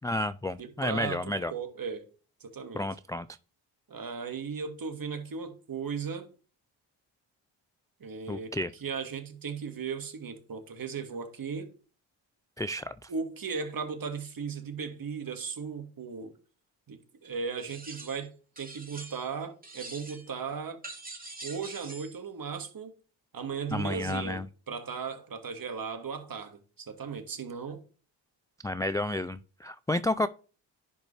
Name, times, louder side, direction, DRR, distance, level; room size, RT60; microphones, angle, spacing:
voice 1, 0.0-1.5 2.7-3.3 8.3-8.7 12.6-13.1 23.7-24.5 28.6-30.3, left 1 dB, 10° left, 0.3 m, -31 dB
voice 2, 0.6-2.1 2.4-2.9 3.9-6.3 8.0-11.7 13.1-16.3 16.9-20.8 21.4-22.9 23.3-27.8, right 6 dB, 45° right, 1.9 m, -37 dB
sound 1, 17.6-18.3 18.6-19.4 19.6-20.3 20.8-22.2, right 2 dB, 15° right, 2.8 m, -44 dB
10.5 x 5.2 x 3.3 m
supercardioid pair, 55°, 50 cm